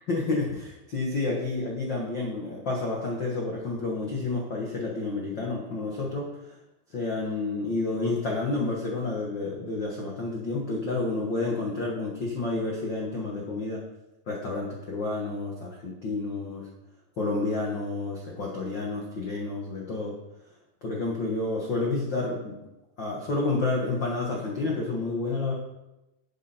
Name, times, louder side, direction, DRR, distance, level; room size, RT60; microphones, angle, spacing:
voice 1, 0.1-6.3 6.9-13.8 14.3-16.7 17.2-20.1 20.8-22.5 23.0-25.5, left 3 dB, 70° left, -2 dB, 1.1 m, -30 dB
11.5 x 8.7 x 4.4 m, 0.94 s
omnidirectional pair, 4.7 m